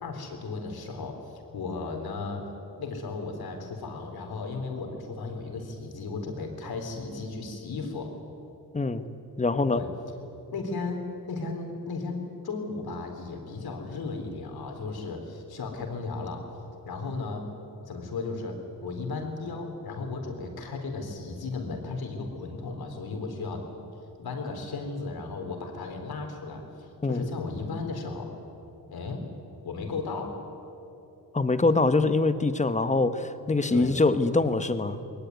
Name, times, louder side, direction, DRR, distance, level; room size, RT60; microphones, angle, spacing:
voice 1, 0.0-2.5 2.8-8.1 9.7-9.9 10.5-11.0 11.3-16.5 16.8-17.5 17.9-23.7 24.2-28.3 28.9-29.3 29.6-30.4 33.7-33.9, left 3 dB, 75° left, 4 dB, 4.0 m, -35 dB
voice 2, 9.4-9.8 27.0-27.3 31.3-35.0, left 3 dB, 20° left, 11 dB, 1.2 m, -24 dB
21.0 x 19.0 x 9.7 m, 2.8 s
cardioid pair, 110°, 38 cm